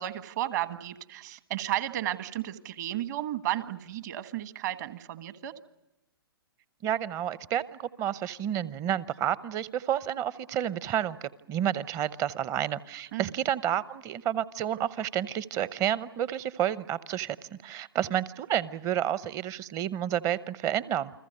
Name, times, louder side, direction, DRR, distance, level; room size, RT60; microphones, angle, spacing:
voice 1, 0.0-5.5 13.1-13.3, right 13 dB, 45° right, 12 dB, 1.5 m, -33 dB
voice 2, 6.8-21.1, right 10 dB, 25° right, 18 dB, 0.8 m, -30 dB
29.0 x 21.5 x 6.6 m, 0.96 s
figure-of-eight pair, 125°, 13 cm